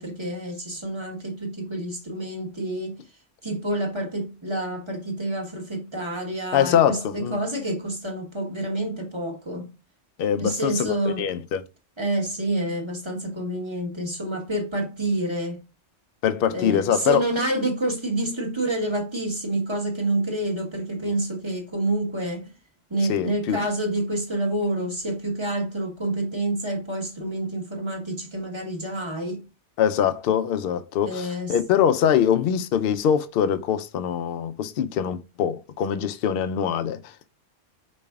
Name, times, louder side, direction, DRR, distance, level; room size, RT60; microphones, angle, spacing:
voice 1, 0.0-3.0 3.4-9.7 10.4-11.3 12.0-15.6 16.5-22.5 22.9-29.4 31.0-31.8, right 1 dB, 25° right, 1.2 m, -28 dB
voice 2, 6.5-7.4 10.2-11.6 16.2-17.2 23.1-23.6 29.8-37.1, left 9 dB, 60° left, 0.6 m, -23 dB
5.3 x 4.2 x 2.3 m
omnidirectional pair, 1.3 m